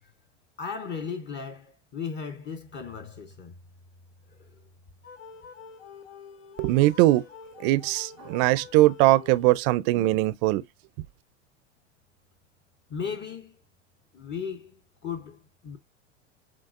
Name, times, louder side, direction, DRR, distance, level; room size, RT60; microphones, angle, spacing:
voice 1, 0.6-3.5 4.4-4.6 12.9-13.6 14.1-15.8, left 6 dB, 30° left, 0.7 m, -36 dB
sound 1, 5.0-9.9, left 6 dB, 75° left, 0.9 m, -47 dB
voice 2, 6.6-7.2 7.6-10.6, right 17 dB, 50° right, 0.5 m, -21 dB
5.9 x 2.4 x 2.4 m
hypercardioid pair, 90°, 35 cm